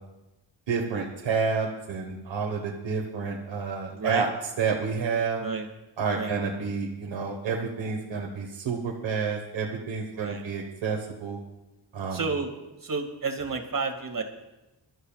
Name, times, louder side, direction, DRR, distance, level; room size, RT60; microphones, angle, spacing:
voice 1, 0.7-4.3 4.6-5.4 6.0-11.4 11.9-12.2, right 5 dB, 85° right, -1 dB, 1.5 m, -29 dB
voice 2, 3.9-4.3 5.4-5.7 6.1-6.3 10.1-10.5 12.1-12.5 12.8-14.2, right 4 dB, 45° right, 4 dB, 2.3 m, -31 dB
24.0 x 12.5 x 2.4 m, 1.0 s
cardioid pair, 55°, 44 cm